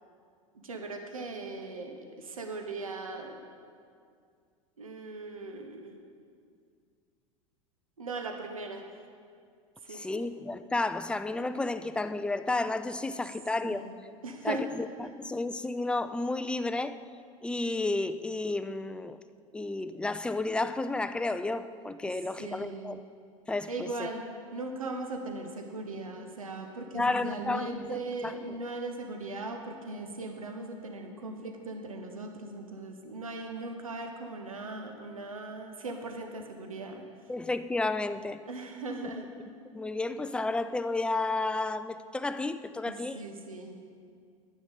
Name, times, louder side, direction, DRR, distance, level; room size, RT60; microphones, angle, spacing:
voice 1, 0.5-3.4 4.8-6.0 8.0-8.8 9.8-10.3 13.1-13.2 13.6-13.9 14.2-14.6 22.4-23.0 23.7-24.3 24.5-37.0 38.5-39.3 42.9-43.8, right 2 dB, 80° right, 4 dB, 0.9 m, -39 dB
voice 2, 9.9-13.9 14.4-17.0 17.4-19.2 19.5-23.0 23.5-24.1 26.9-27.9 28.2-28.3 37.3-38.4 39.7-43.2, left 2 dB, 5° left, 12 dB, 0.3 m, -32 dB
10.5 x 10.0 x 3.9 m, 2.3 s
figure-of-eight pair, 80°, 17 cm